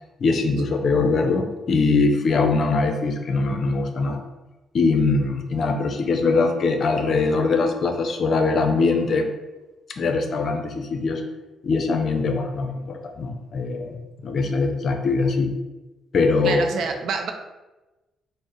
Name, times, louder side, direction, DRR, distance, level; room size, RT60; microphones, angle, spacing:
voice 1, 0.2-4.2 4.7-9.3 10.0-11.2 11.6-13.9 14.2-15.5 16.1-16.7, left 3 dB, 55° left, 5 dB, 0.5 m, -22 dB
voice 2, 16.4-17.3, right 5 dB, 70° right, 5 dB, 0.4 m, -26 dB
4.3 x 2.0 x 3.1 m, 1.1 s
cardioid pair, 90°, 0 cm